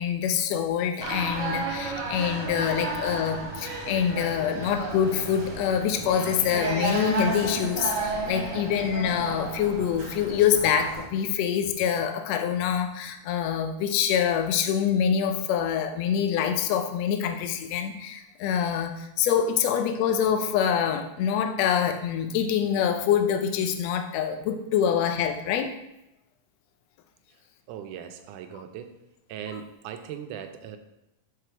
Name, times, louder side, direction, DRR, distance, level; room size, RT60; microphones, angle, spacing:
voice 1, 0.0-25.7 28.5-28.6, left 8 dB, 80° left, 5 dB, 1.5 m, -25 dB
sound 1, 1.0-11.0, right 2 dB, 35° right, 2.1 m, -32 dB
voice 2, 27.7-29.0 29.3-30.8, right 9 dB, 80° right, 7 dB, 2.0 m, -39 dB
5.7 x 4.9 x 4.4 m, 0.88 s
omnidirectional pair, 3.7 m